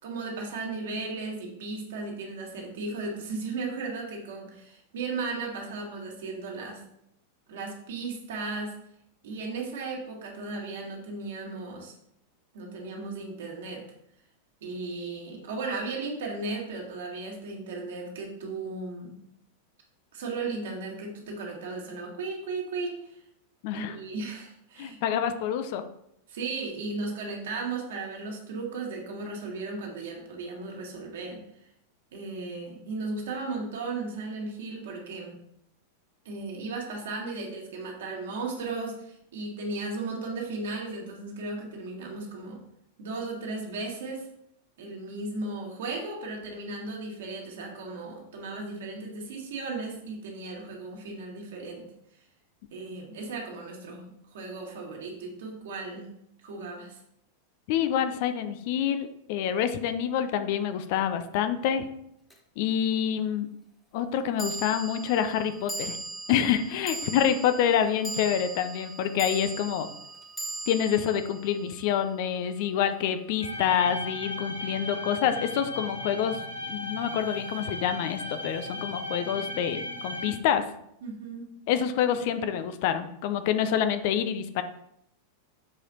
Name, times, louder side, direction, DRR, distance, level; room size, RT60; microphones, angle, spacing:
voice 1, 0.0-6.8 7.5-8.7 9.2-11.9 12.5-13.8 14.6-19.2 20.1-23.1 23.7-25.0 26.3-31.4 32.1-35.4 36.2-42.6 43.0-44.3 44.8-51.9 52.7-56.1 56.4-57.0 81.0-81.5, right 3 dB, 60° right, -1 dB, 2.2 m, -36 dB
voice 2, 23.6-24.0 24.8-25.8 57.7-61.9 62.6-63.5 63.9-66.0 66.3-69.9 70.7-80.6 81.7-84.6, left 9 dB, 50° left, 10 dB, 0.6 m, -27 dB
sound 1, 62.3-62.4 64.4-72.8, right 2 dB, 5° left, 1.3 m, -39 dB
sound 2, 73.4-80.3, left 1 dB, 90° left, 1.4 m, -36 dB
7.5 x 4.9 x 4.3 m, 0.75 s
figure-of-eight pair, 90°, 0 cm